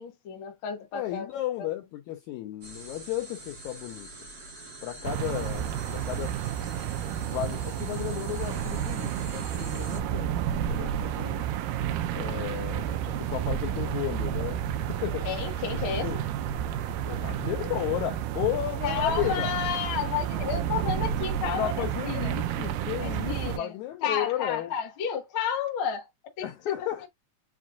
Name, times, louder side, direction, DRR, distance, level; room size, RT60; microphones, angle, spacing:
voice 1, 0.0-1.3 15.2-16.1 18.8-22.3 23.0-23.7 24.0-26.1 26.4-26.7 27.0-27.1, left 7 dB, 70° left, 1.2 m, -31 dB
voice 2, 0.9-4.1 4.8-6.4 7.2-10.3 10.7-11.4 12.1-14.6 14.9-15.3 16.0-16.2 17.1-19.5 21.5-24.7 26.4-27.1, left 13 dB, 85° left, 1.6 m, -33 dB
sound 1, 2.6-10.0, right 1 dB, 45° right, 1.2 m, -45 dB
sound 2, 5.0-23.6, right 10 dB, 80° right, 2.0 m, -31 dB
7.4 x 2.5 x 2.3 m
omnidirectional pair, 4.1 m